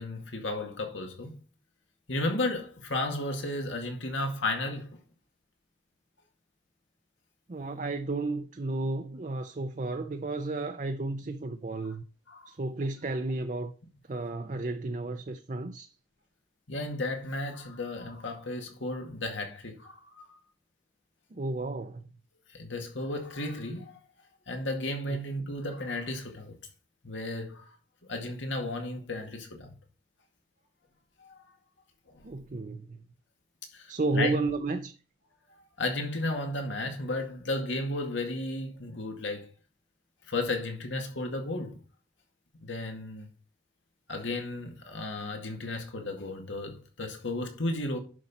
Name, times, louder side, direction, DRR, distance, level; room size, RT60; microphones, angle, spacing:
voice 1, 0.0-1.4 2.1-4.9 11.8-12.0 12.3-12.5 13.1-13.2 16.7-20.3 22.5-24.0 24.5-26.6 27.0-27.8 28.1-29.7 31.2-31.4 32.1-32.3 33.7-34.3 35.8-39.5 40.3-41.8 42.6-43.3 44.1-48.0, left 2 dB, 90° left, 2.1 m, -34 dB
voice 2, 7.5-12.0 12.5-13.7 14.1-15.9 21.3-22.0 25.1-25.2 32.2-33.0 33.9-34.9, right 2 dB, 40° right, 0.5 m, -32 dB
11.0 x 5.4 x 4.2 m
head